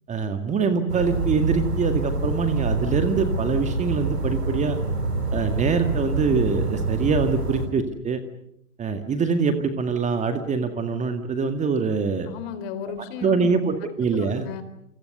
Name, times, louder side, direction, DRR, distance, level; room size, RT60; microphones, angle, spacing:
voice 1, 0.1-4.8 5.3-8.2 8.8-12.3 13.2-14.5, right 5 dB, 15° right, 8 dB, 2.1 m, -24 dB
sound 1, 0.9-7.7, right 2 dB, 85° right, 5.3 m, -26 dB
voice 2, 12.3-14.6, left 7 dB, 40° left, 13 dB, 3.9 m, -35 dB
28.5 x 27.0 x 6.8 m, 0.80 s
figure-of-eight pair, 115°, 46 cm